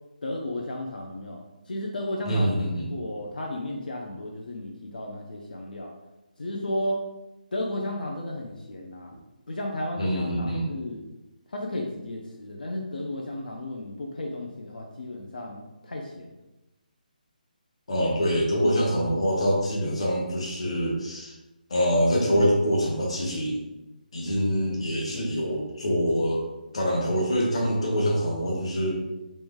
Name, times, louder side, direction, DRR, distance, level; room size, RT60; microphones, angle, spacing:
voice 1, 0.2-1.4 1.7-2.5 2.9-5.9 6.4-7.0 7.5-9.1 9.5-11.0 11.5-16.3, left 1 dB, 75° left, 0 dB, 0.6 m, -33 dB
voice 2, 2.2-2.9 10.0-10.7 17.9-21.3 21.7-23.6 24.1-26.5 26.7-29.0, equal, 40° left, -2 dB, 1.0 m, -25 dB
3.2 x 3.1 x 3.6 m, 1.0 s
hypercardioid pair, 180°, 5 cm